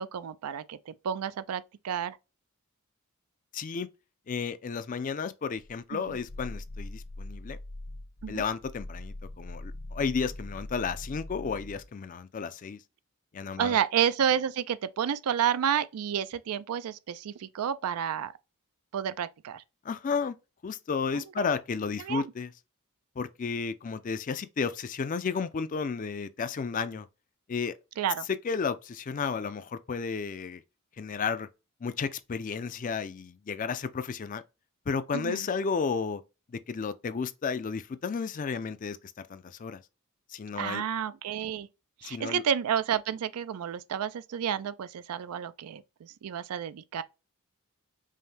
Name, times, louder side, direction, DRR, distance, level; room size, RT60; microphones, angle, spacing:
voice 1, 0.0-2.2 5.9-6.2 8.2-8.4 13.6-18.3 18.9-19.6 21.1-21.5 22.0-22.3 28.0-28.3 35.1-35.5 40.6-41.7 42.0-47.0, right 8 dB, 85° right, 0.4 m, -30 dB
voice 2, 3.5-3.9 4.3-7.6 8.3-12.8 13.3-13.8 19.8-20.4 20.6-22.5 23.2-27.1 27.5-27.7 28.4-30.6 31.0-31.5 31.8-34.4 34.9-36.2 36.5-39.0 39.3-39.8 40.3-40.8 42.0-42.4, left 5 dB, 35° left, 0.4 m, -32 dB
Growling, 5.6-11.9, left 1 dB, 65° left, 1.1 m, -42 dB
5.5 x 2.1 x 3.2 m
head